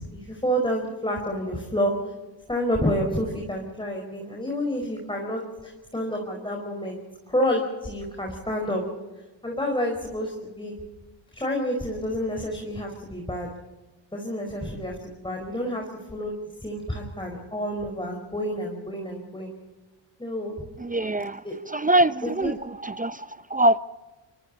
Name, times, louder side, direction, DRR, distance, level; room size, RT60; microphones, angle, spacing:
voice 1, 0.0-1.9 2.5-7.0 7.3-8.8 9.4-10.7 11.3-13.5 14.1-15.9 16.1-16.4 16.6-19.5 20.2-20.6 21.4-21.5 22.2-22.5, equal, 10° left, 5.2 m, -29 dB
voice 2, 20.8-21.4 21.7-22.6 22.8-23.8, right 1 dB, 15° right, 0.7 m, -23 dB
26.0 x 24.5 x 4.2 m
cardioid pair, 75°, 48 cm